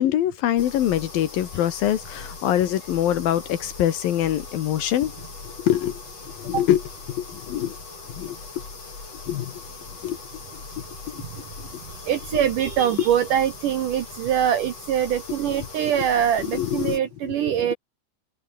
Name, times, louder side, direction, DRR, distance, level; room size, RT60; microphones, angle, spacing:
voice 1, 0.0-5.1 5.6-6.0 6.4-6.8 7.1-7.8 8.1-8.4 9.3-9.6 10.0-10.2 11.1-11.2 16.5-17.0, left 11 dB, 65° left, 2.7 m, -24 dB
sound 1, 0.6-17.0, left 4 dB, 35° left, 6.4 m, -40 dB
voice 2, 11.8-17.7, right 9 dB, 70° right, 2.1 m, -23 dB
omnidirectional pair, 5.0 m